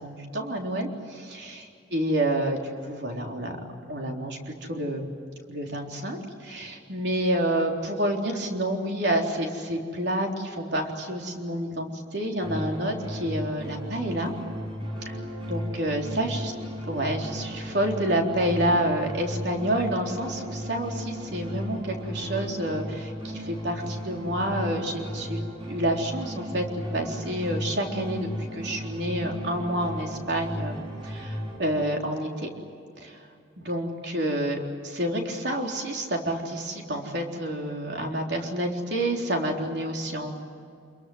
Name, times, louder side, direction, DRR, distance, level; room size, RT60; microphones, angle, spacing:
voice 1, 0.0-3.6 3.9-5.1 5.5-14.3 15.1-15.2 15.5-16.5 16.9-25.4 25.7-26.6 26.9-30.8 31.0-32.5 33.0-33.2 33.6-34.6 34.9-40.4, right 1 dB, 70° right, 1 dB, 3.8 m, -28 dB
sound 1, 12.4-31.6, equal, 30° right, 7.9 m, -35 dB
27.5 x 22.5 x 8.0 m, 2.4 s
head